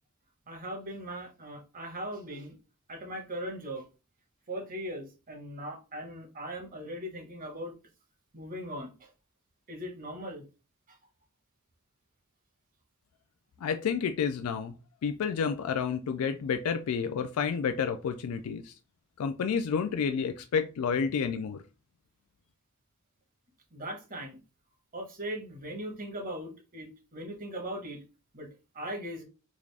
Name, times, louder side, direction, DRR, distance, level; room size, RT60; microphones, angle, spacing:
voice 1, 0.5-2.5 2.9-3.8 4.5-7.8 8.3-9.1 9.7-10.4 10.9-11.0 23.7-24.4 24.9-28.0 28.3-28.5 28.7-29.2, equal, 40° right, 1.0 m, -39 dB
voice 2, 13.6-14.8 15.0-18.7 19.2-21.6, left 6 dB, 90° left, 0.3 m, -30 dB
3.6 x 2.4 x 3.2 m
head